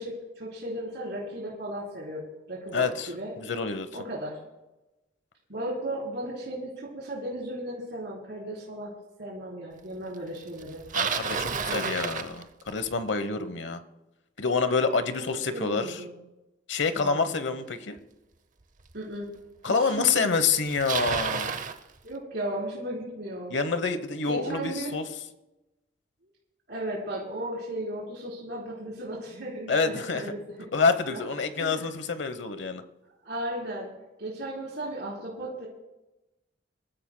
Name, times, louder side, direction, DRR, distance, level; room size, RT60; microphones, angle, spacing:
voice 1, 0.0-3.3 3.9-4.4 5.5-10.8 11.5-12.3 15.1-15.2 15.5-16.1 17.0-17.5 18.9-19.3 19.7-20.3 22.0-23.6 24.3-25.0 26.7-30.7 31.1-31.2 31.6-31.9 33.2-33.9 34.2-35.7, right 1 dB, 65° right, -5 dB, 3.9 m, -36 dB
voice 2, 2.7-3.1 3.4-3.9 10.9-13.8 14.4-16.0 16.7-18.0 19.6-21.5 23.5-25.0 29.7-30.2 30.7-32.8, left 4 dB, 75° left, 10 dB, 1.0 m, -27 dB
Bicycle, 10.6-12.9 18.0-18.1 18.9-19.0 20.0-20.1 20.3-21.8, right 6 dB, 45° right, 0.7 m, -31 dB
26.0 x 14.0 x 2.2 m, 1.0 s
head